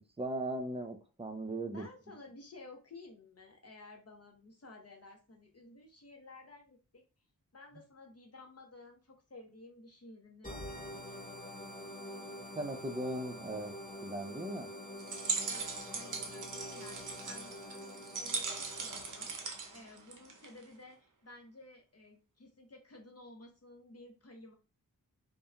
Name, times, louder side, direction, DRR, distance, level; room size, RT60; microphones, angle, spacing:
voice 1, 0.2-1.8 12.6-13.7 14.0-14.7, right 1 dB, 15° right, 7 dB, 0.5 m, -38 dB
voice 2, 1.7-7.0 7.5-11.6 15.4-24.5, left 2 dB, 45° left, 2 dB, 0.7 m, -54 dB
sound 1, 10.4-19.8, left 1 dB, 20° left, 1.5 m, -47 dB
sound 2, 15.0-20.6, right 4 dB, 60° right, 0.7 m, -39 dB
2.8 x 2.1 x 2.4 m, 0.32 s
cardioid pair, 45°, 36 cm